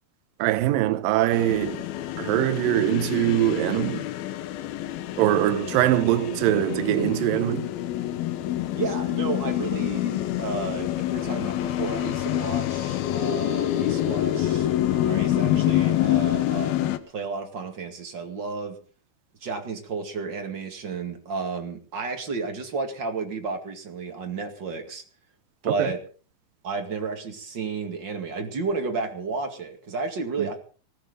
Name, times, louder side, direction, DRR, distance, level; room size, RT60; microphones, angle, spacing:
voice 1, 0.4-1.9 2.2-4.0 5.2-7.7 25.8-25.9 30.4-30.5, right 14 dB, 75° right, 2.2 m, -23 dB
sound 1, 1.3-17.0, left 13 dB, 70° left, 2.6 m, -27 dB
voice 2, 8.7-18.8 19.4-25.0 25.6-26.0 26.6-30.6, right 4 dB, 40° right, 1.7 m, -32 dB
20.0 x 15.0 x 3.9 m
omnidirectional pair, 5.0 m